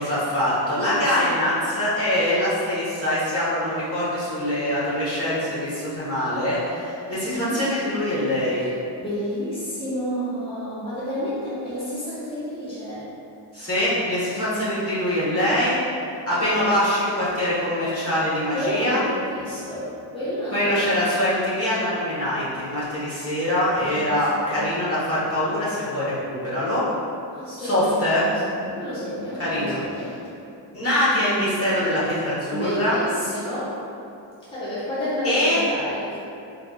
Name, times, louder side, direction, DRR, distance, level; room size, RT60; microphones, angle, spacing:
voice 1, 0.0-8.6 13.5-15.8 16.3-19.0 20.5-26.8 27.6-28.3 29.4-29.8 30.7-33.0 35.2-35.6, left 1 dB, 30° left, -11 dB, 1.5 m, -23 dB
voice 2, 7.2-7.6 8.6-8.7 9.0-13.0 18.5-20.8 23.9-24.7 27.3-30.1 32.5-33.7 34.5-36.2, equal, 10° left, -12 dB, 1.3 m, -30 dB
4.0 x 3.3 x 2.4 m, 2.7 s
cardioid pair, 65°, 47 cm